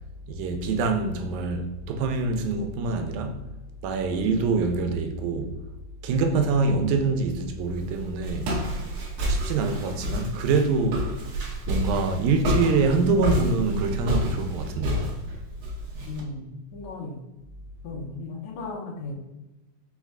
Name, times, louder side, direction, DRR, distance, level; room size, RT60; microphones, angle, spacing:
voice 1, 0.3-3.5 3.8-5.5 6.0-8.8 9.2-11.2 11.7-15.1, right 4 dB, 85° right, 2.0 m, -25 dB
Walk footsteps, 7.6-16.2, equal, 65° right, 1.5 m, -29 dB
voice 2, 16.1-17.2 17.8-19.1, left 3 dB, 80° left, 2.1 m, -36 dB
5.1 x 2.2 x 3.5 m
omnidirectional pair, 3.3 m